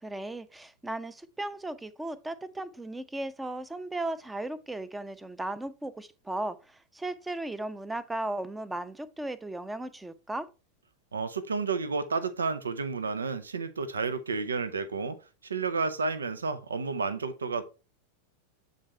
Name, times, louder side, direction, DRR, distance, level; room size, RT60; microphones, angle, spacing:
voice 1, 0.0-10.5, right 2 dB, 5° right, 0.6 m, -36 dB
voice 2, 11.1-15.2 15.4-17.6, right 4 dB, 70° right, 0.7 m, -31 dB
8.5 x 4.0 x 4.4 m
figure-of-eight pair, 90°, 0 cm